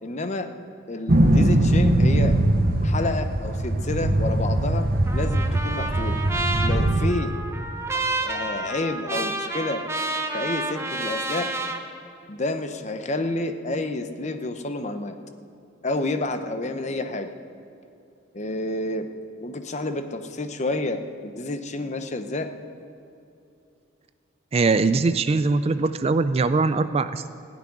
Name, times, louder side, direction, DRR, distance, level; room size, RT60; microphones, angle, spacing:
voice 1, 0.0-0.5 0.9-2.4 2.8-6.2 6.6-7.3 8.2-9.9 10.3-11.5 12.3-15.2 15.8-17.3 18.3-19.1 19.4-22.5, left 2 dB, 35° left, 8 dB, 0.8 m, -29 dB
sound 1, 1.1-7.1, right 1 dB, 50° right, 0.8 m, -21 dB
Trumpet, 5.1-11.8, right 2 dB, 15° right, 0.8 m, -30 dB
voice 2, 24.5-27.3, right 3 dB, 30° right, 12 dB, 0.3 m, -21 dB
15.5 x 6.1 x 10.0 m, 2.6 s
head